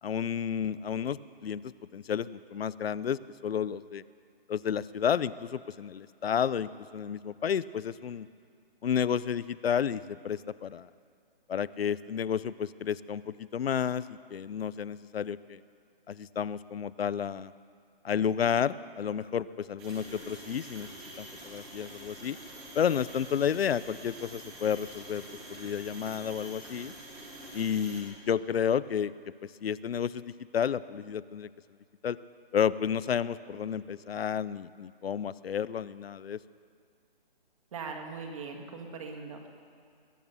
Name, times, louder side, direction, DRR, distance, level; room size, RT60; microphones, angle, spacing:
voice 1, 0.0-4.0 4.5-8.3 8.8-10.9 11.5-15.6 16.1-17.5 18.0-20.9 21.2-22.4 22.7-25.2 25.5-26.9 27.5-29.1 29.6-31.5 32.0-32.2 32.5-36.4, left 8 dB, 90° left, 18 dB, 0.6 m, -31 dB
sound 1, 19.8-28.0, right 1 dB, 5° right, 0.5 m, -46 dB
voice 2, 37.7-39.5, right 4 dB, 35° right, 3 dB, 1.8 m, -40 dB
21.5 x 8.2 x 6.9 m, 2.2 s
hypercardioid pair, 165°, 29 cm